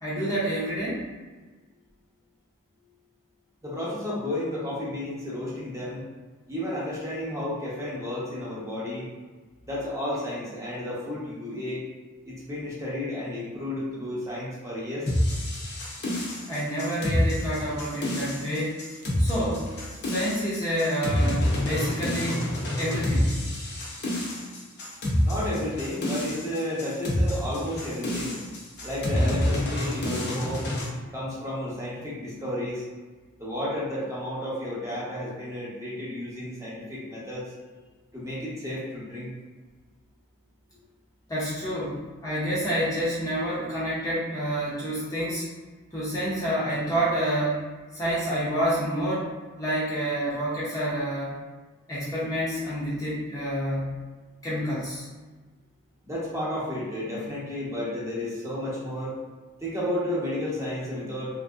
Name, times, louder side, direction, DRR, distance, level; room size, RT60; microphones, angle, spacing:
voice 1, 0.0-1.1 16.5-18.8 19.2-19.7 20.0-22.5 22.8-23.4 41.3-45.5 45.9-47.6 47.9-49.3 49.6-51.4 51.9-54.0 54.4-55.1, equal, 15° left, -9 dB, 0.6 m, -28 dB
voice 2, 3.6-6.0 6.5-9.1 9.6-11.8 12.2-15.1 25.2-28.4 28.8-30.7 31.1-32.8 33.4-37.4 38.1-39.3 56.0-59.2 59.6-61.3, left 1 dB, 15° right, -7 dB, 0.8 m, -32 dB
sound 1, 15.1-30.9, left 1 dB, 55° left, 0.6 m, -27 dB
2.9 x 2.6 x 2.3 m, 1.3 s
head